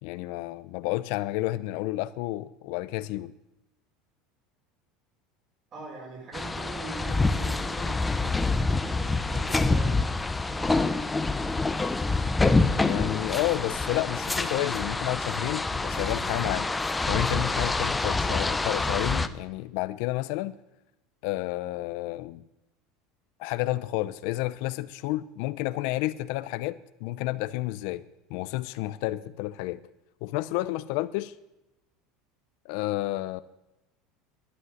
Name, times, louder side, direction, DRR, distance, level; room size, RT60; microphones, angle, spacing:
voice 1, 0.0-3.3 12.8-16.7 17.0-20.6 21.2-22.4 23.4-29.8 30.2-31.3 32.6-33.4, left 17 dB, 70° left, 0.6 m, -31 dB
voice 2, 5.7-8.3 8.8-10.1 10.4-10.9, right 3 dB, 40° right, 5.0 m, -42 dB
sound 1, 6.3-19.3, left 3 dB, 10° left, 0.6 m, -26 dB
11.0 x 10.0 x 6.6 m
supercardioid pair, 125°, 0 cm